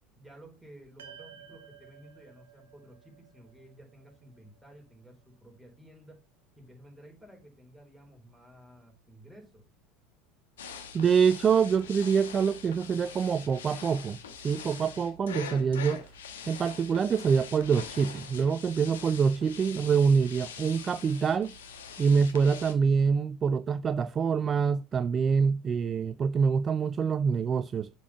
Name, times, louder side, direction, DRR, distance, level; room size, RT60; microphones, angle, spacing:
voice 1, 0.2-6.2 6.6-9.6, right 1 dB, 5° right, 3.8 m, -53 dB
sound 1, 1.0-5.5, right 8 dB, 80° right, 0.9 m, -54 dB
sound 2, 10.6-22.7, left 6 dB, 80° left, 1.1 m, -44 dB
voice 2, 10.9-14.2 14.4-16.0 16.5-21.5 22.0-27.9, right 6 dB, 30° right, 0.4 m, -25 dB
7.2 x 4.5 x 5.5 m
hypercardioid pair, 75°, 0 cm